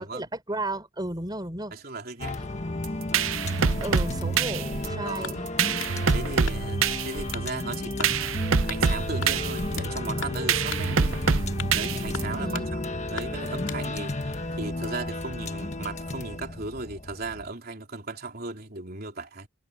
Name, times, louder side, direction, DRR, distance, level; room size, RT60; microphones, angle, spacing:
voice 1, 0.0-1.7 3.8-5.5 12.3-12.7, right 1 dB, 20° right, 3.8 m, -33 dB
voice 2, 1.7-2.4 5.0-5.4 6.1-8.4 8.6-11.2 11.7-12.8 13.1-19.5, right 3 dB, 50° right, 3.8 m, -36 dB
sound 1, 2.2-17.5, left 2 dB, 35° left, 1.4 m, -33 dB
sound 2, 2.8-12.5, right 6 dB, 75° right, 0.7 m, -26 dB
sound 3, 5.2-6.0 6.5-6.9 7.3-7.5 8.0-8.2 8.7-8.9 9.2-9.9 10.2-10.4 10.7-10.9 11.3-11.8 12.1-12.7 13.2-13.8, left 6 dB, 65° left, 2.4 m, -38 dB
head